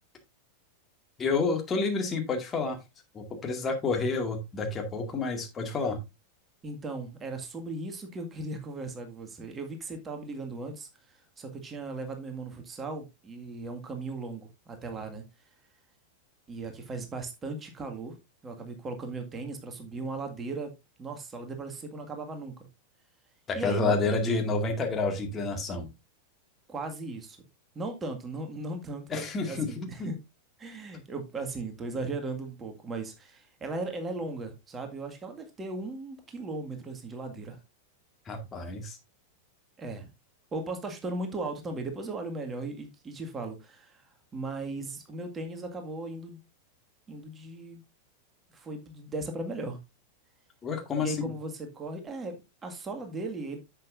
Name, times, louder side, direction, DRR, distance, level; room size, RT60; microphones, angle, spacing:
voice 1, 1.2-2.8 3.1-6.0 23.5-25.9 29.1-30.1 38.3-39.0 50.6-51.3, left 3 dB, 20° left, 2.2 m, -29 dB
voice 2, 6.6-15.2 16.5-18.2 18.4-20.7 21.0-22.5 23.5-24.2 26.7-27.4 27.8-30.2 30.6-37.6 39.8-40.1 40.5-44.0 44.3-46.4 47.1-47.8 48.5-49.8 51.0-52.4 52.6-53.6, right 2 dB, 20° right, 1.9 m, -37 dB
10.5 x 7.9 x 2.6 m
figure-of-eight pair, 90°, 0 cm